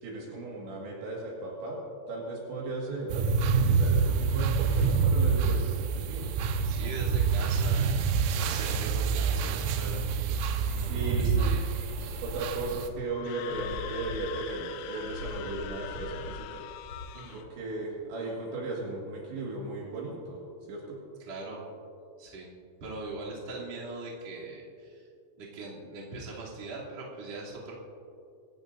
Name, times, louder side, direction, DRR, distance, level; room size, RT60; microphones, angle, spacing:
voice 1, 0.0-1.8 2.1-3.2 3.6-6.3 10.9-11.5 12.2-16.6 17.3-20.4 20.7-21.0, right 2 dB, 65° right, -3 dB, 4.0 m, -36 dB
sound 1, 3.1-12.9, right 5 dB, 85° right, 3.4 m, -27 dB
voice 2, 6.6-8.0 8.3-10.0 10.3-11.7 17.1-17.4 21.2-21.7 22.2-22.5 22.8-25.1 25.4-27.7, right 3 dB, 35° right, -6 dB, 3.5 m, -41 dB
sound 2, 10.3-11.1 11.5-12.8 13.4-14.5 15.0-16.4 16.7-17.0, left 1 dB, 35° left, 5.0 m, -42 dB
Screaming, 13.1-17.5, left 10 dB, 85° left, 2.6 m, -42 dB
25.0 x 14.5 x 2.7 m, 2.4 s
omnidirectional pair, 5.9 m